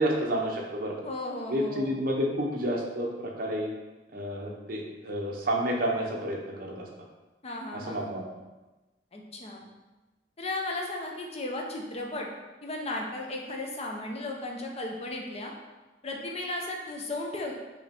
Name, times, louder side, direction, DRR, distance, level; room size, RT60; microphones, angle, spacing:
voice 1, 0.0-0.9 1.5-3.7 4.1-6.9 7.7-8.2, equal, 50° right, -1 dB, 0.8 m, -30 dB
voice 2, 1.0-2.0 7.4-8.1 9.1-9.7 10.4-12.3 12.6-15.5 16.0-17.5, left 2 dB, 35° left, 1 dB, 0.7 m, -35 dB
4.8 x 3.0 x 3.5 m, 1.1 s
head